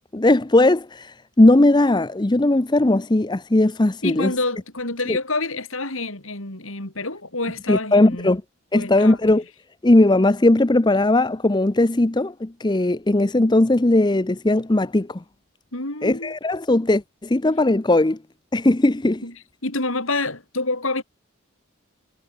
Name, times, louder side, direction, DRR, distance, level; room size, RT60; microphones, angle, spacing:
voice 1, 0.1-4.3 5.1-5.2 7.7-8.4 8.7-9.4 9.8-15.2 16.0-18.2 18.5-19.2, left 2 dB, 20° left, 0.6 m, -18 dB
voice 2, 4.0-8.3 8.7-9.2 15.7-16.4 19.2-19.3 19.6-21.0, left 2 dB, 70° left, 5.7 m, -27 dB
head